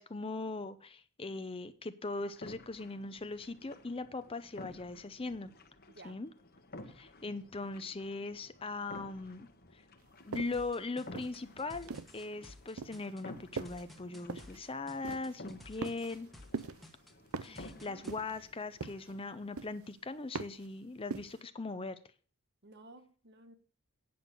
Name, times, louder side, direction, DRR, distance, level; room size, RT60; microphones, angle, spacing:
voice 1, 0.0-5.5 6.0-6.3 6.9-9.5 9.7-9.8 10.3-16.3 17.4-22.0, left 3 dB, 25° left, 12 dB, 0.6 m, -40 dB
sound 1, 2.2-19.6, left 2 dB, 45° left, 1.1 m, -54 dB
voice 2, 5.9-6.2 17.5-18.0 22.6-23.5, right 2 dB, 50° right, 8 dB, 1.3 m, -55 dB
sound 2, 10.3-10.7 11.1-12.2 12.8-13.1 13.6-13.9 14.3-14.6 15.0-15.4 15.8-16.3 16.5-16.9 17.3-17.7 18.1-18.5 18.8-19.2 19.6-19.9 20.3-20.7 21.1-21.4, right 4 dB, 70° right, 0.6 m, -41 dB
sound 3, 10.5-18.2, left 1 dB, ahead, 1.1 m, -54 dB
9.4 x 6.2 x 6.6 m, 0.40 s
head